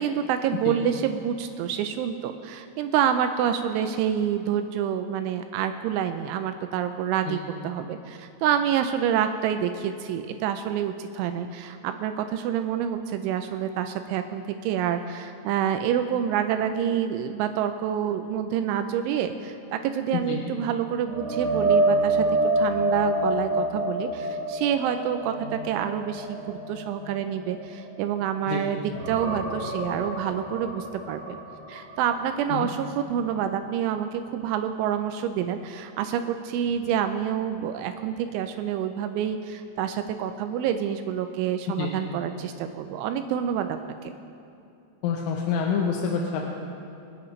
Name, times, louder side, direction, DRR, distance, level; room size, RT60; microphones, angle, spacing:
voice 1, 0.0-7.4 7.6-22.3 22.6-28.8 29.1-31.4 31.7-44.1, right 9 dB, 85° right, 8 dB, 2.8 m, -27 dB
sound 1, 21.1-28.5 28.8-32.7 33.1-33.3 36.6-36.7, right 1 dB, 45° right, 3.2 m, -28 dB
voice 2, 45.0-46.5, left 6 dB, 80° left, 0 dB, 3.3 m, -27 dB
27.5 x 9.4 x 3.2 m, 2.7 s
omnidirectional pair, 5.8 m